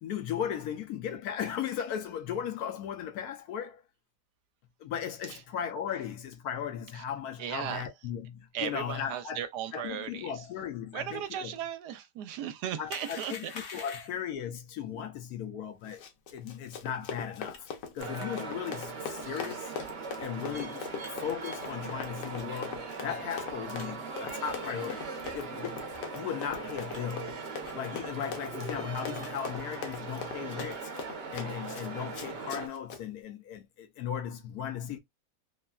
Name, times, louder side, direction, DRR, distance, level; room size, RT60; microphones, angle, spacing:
voice 1, 0.0-3.8 4.8-9.4 9.7-11.6 12.8-16.0 16.3-17.7 17.9-19.7 20.2-20.9 21.2-25.1 25.3-25.9 26.1-27.4 27.7-30.9 31.3-35.0, left 8 dB, 70° left, 1.1 m, -37 dB
voice 2, 7.4-7.8 8.5-10.3 10.9-13.5, right 10 dB, 80° right, 1.1 m, -36 dB
sound 1, 12.9-14.3 17.5-17.6 18.2-18.3 19.3-19.6 20.1-20.2 21.0-21.1 21.6-21.8 22.3-22.5 23.0-23.1 23.4-23.5 23.8-23.9 24.4-24.6 25.2-25.4 25.9-26.0 26.5-27.0 27.6-27.8 28.1-28.2 28.5-28.7 29.2-29.3 29.6-30.0 30.4-30.7 31.3-31.5, left 4 dB, 50° left, 0.7 m, -46 dB
Run, 15.8-33.0, left 6 dB, 85° left, 1.4 m, -42 dB
sound 2, 18.0-32.7, right 4 dB, 50° right, 0.8 m, -40 dB
3.2 x 2.2 x 2.2 m
omnidirectional pair, 1.8 m